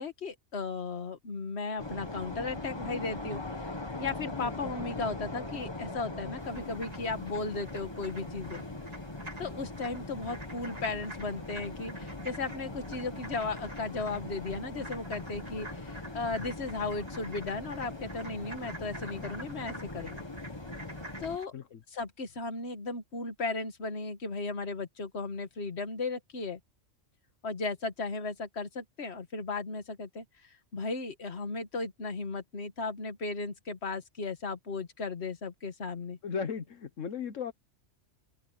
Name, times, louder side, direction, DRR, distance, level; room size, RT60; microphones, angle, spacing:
voice 1, 0.0-3.4 4.0-8.6 9.4-20.2 21.2-21.5 21.9-26.6 27.4-36.2, left 3 dB, 60° left, 1.9 m, -36 dB
sound 1, 1.8-21.4, left 2 dB, 20° left, 1.7 m, -41 dB
sound 2, 6.4-21.5, right 1 dB, 30° right, 3.7 m, -49 dB
voice 2, 36.2-37.5, left 6 dB, 80° left, 1.5 m, -36 dB
open air
omnidirectional pair, 1.3 m